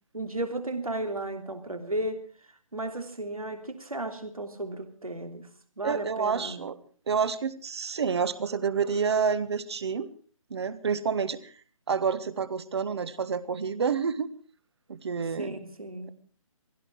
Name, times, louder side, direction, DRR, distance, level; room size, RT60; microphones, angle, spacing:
voice 1, 0.1-2.3 2.7-5.5 5.8-6.7 15.4-16.1, right 1 dB, 85° right, 3.3 m, -34 dB
voice 2, 5.8-6.7 7.1-10.1 10.5-11.4 11.9-14.3 14.9-15.5, right 6 dB, 50° right, 1.5 m, -28 dB
19.0 x 16.0 x 4.7 m
figure-of-eight pair, 145°, 18 cm